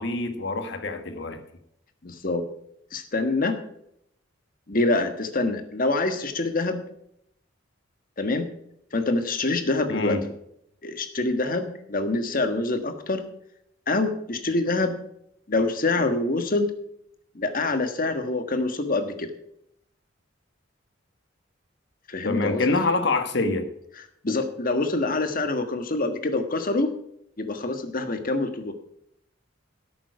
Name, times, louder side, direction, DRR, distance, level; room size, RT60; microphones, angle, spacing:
voice 1, 0.0-1.4 9.9-10.3 22.2-23.7, left 3 dB, 65° left, 7 dB, 1.5 m, -26 dB
voice 2, 2.0-2.4 2.9-3.5 4.7-6.8 8.2-8.5 8.9-10.2 10.8-13.2 13.9-15.0 15.5-16.7 17.3-19.3 22.1-22.8 24.2-26.9 27.4-28.7, left 2 dB, 45° left, 7 dB, 1.5 m, -25 dB
11.5 x 8.8 x 4.8 m, 0.75 s
head